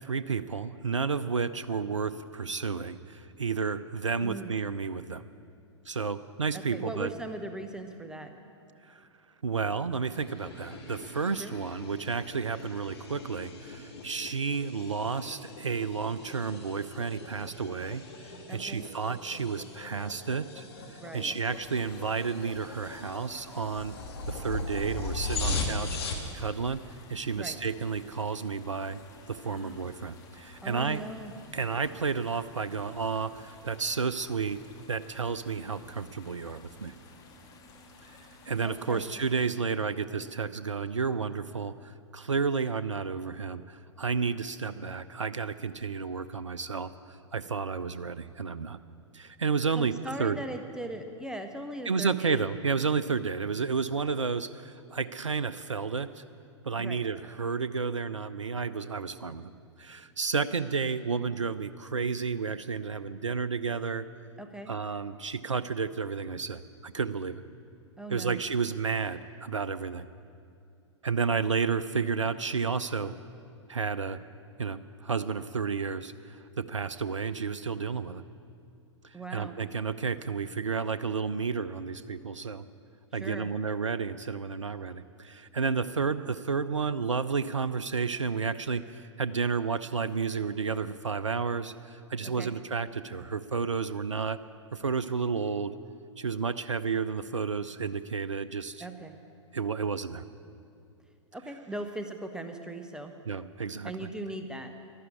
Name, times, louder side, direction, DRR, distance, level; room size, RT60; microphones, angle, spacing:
voice 1, 0.0-5.2 5.9-7.1 8.8-9.1 9.4-23.9 24.3-26.8 27.1-29.0 29.3-31.0 31.5-34.6 34.9-36.9 38.0-38.1 38.5-48.8 49.1-49.9 50.2-50.4 51.9-56.2 56.7-59.5 59.8-64.1 64.7-67.4 68.1-70.1 71.0-73.2 73.7-74.2 74.6-78.2 79.0-82.6 83.1-94.4 94.7-95.7 96.2-98.9 99.5-100.2 103.3-104.1, right 5 dB, 80° right, 14 dB, 0.5 m, -31 dB
voice 2, 4.2-4.5 6.5-8.3 11.4-11.5 18.5-18.9 21.0-21.3 27.4-27.6 29.4-29.9 30.6-31.3 38.6-39.1 49.7-52.4 56.8-57.0 64.4-64.7 68.0-68.4 79.1-79.6 83.1-83.5 92.2-92.5 98.8-99.2 101.3-103.1 103.8-104.7, right 1 dB, 5° right, 6 dB, 0.6 m, -39 dB
sound 1, 10.0-26.3, left 3 dB, 55° left, 2.2 m, -39 dB
sound 2, 21.5-39.5, left 2 dB, 25° left, 1.7 m, -53 dB
12.5 x 12.0 x 8.5 m, 2.4 s
figure-of-eight pair, 105°, 16 cm